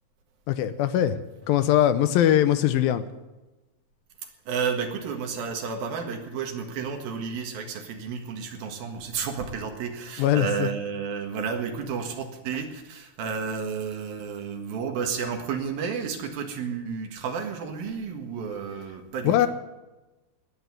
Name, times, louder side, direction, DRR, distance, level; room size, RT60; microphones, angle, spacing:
voice 1, 0.5-1.2 1.5-3.1 10.2-10.7 19.2-19.5, left 11 dB, 80° left, 11 dB, 2.5 m, -21 dB
voice 2, 4.2-19.5, right 6 dB, 75° right, 4 dB, 3.5 m, -32 dB
19.5 x 8.2 x 8.1 m, 1.1 s
omnidirectional pair, 4.3 m